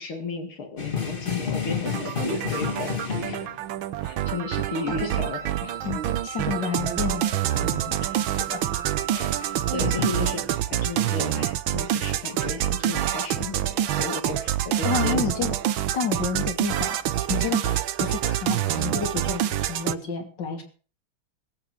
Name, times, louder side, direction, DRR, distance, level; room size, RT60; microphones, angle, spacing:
voice 1, 0.0-3.5 4.0-5.7 8.0-8.2 9.1-9.4 9.7-15.3, left 4 dB, 80° left, 4 dB, 3.2 m, -34 dB
sound 1, 0.8-3.8 6.5-7.2 7.5-10.7 18.0-19.2 19.8-19.9, left 6 dB, 25° left, 2.4 m, -33 dB
sound 2, 1.9-20.0, right 11 dB, 75° right, 1.7 m, -27 dB
Wind instrument woodwind instrument, 4.2-10.4, right 9 dB, 55° right, 2.6 m, -38 dB
voice 2, 5.8-8.1 8.4-8.6 14.8-15.6 15.9-17.0 17.3-20.6, left 6 dB, 55° left, 5 dB, 3.4 m, -30 dB
21.0 x 8.4 x 6.4 m, 0.40 s
omnidirectional pair, 2.3 m